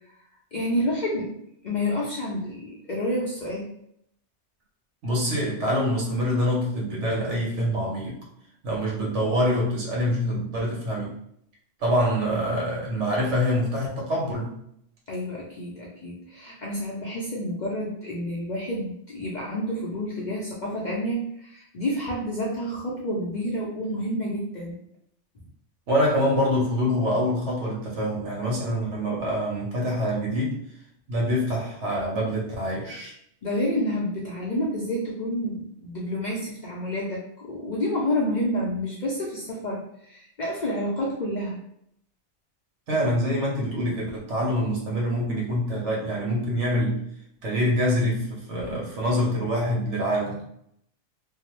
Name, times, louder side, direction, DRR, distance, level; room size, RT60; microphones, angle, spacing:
voice 1, 0.5-1.4 1.6-3.7 15.1-24.7 33.4-41.6, equal, 55° left, -4 dB, 0.5 m, -29 dB
voice 2, 5.0-8.2 8.6-11.2 11.8-14.6 25.9-30.6 31.1-33.1 42.9-47.0 47.4-50.4, equal, 75° right, -3 dB, 1.2 m, -25 dB
2.7 x 2.0 x 2.9 m, 0.72 s
omnidirectional pair, 1.2 m